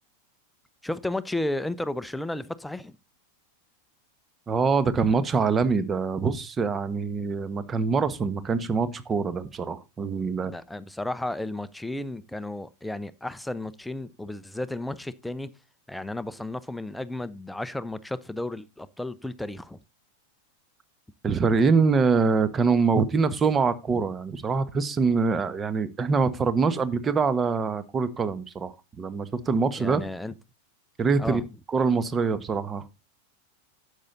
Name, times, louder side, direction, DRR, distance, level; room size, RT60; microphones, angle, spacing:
voice 1, 0.8-3.0 10.4-15.5 15.9-19.8 29.8-30.3 31.2-31.5, left 1 dB, 5° left, 0.8 m, -33 dB
voice 2, 4.5-10.5 21.2-30.0 31.0-31.4 31.7-32.9, right 4 dB, 20° right, 1.3 m, -24 dB
12.0 x 8.4 x 4.0 m
figure-of-eight pair, 90°, 0 cm